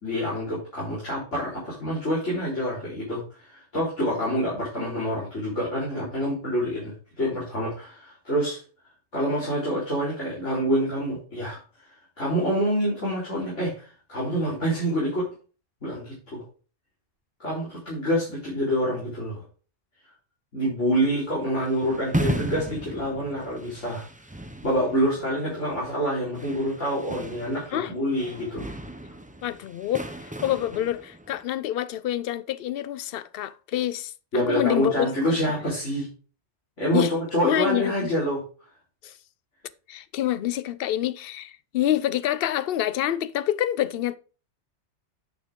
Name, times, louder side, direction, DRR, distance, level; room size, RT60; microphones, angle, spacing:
voice 1, 0.0-8.6 9.1-11.6 12.2-15.3 15.8-16.4 17.4-19.4 20.5-24.0 24.6-28.7 34.3-36.1 36.8-38.4, equal, 85° left, 4.4 m, -27 dB
sound 1, 20.9-31.4, right 1 dB, 10° right, 0.7 m, -35 dB
voice 2, 29.4-35.1 36.9-37.1 37.4-38.1 39.0-39.1 39.9-44.2, left 12 dB, 60° left, 0.7 m, -27 dB
9.9 x 6.3 x 3.7 m
omnidirectional pair, 1.2 m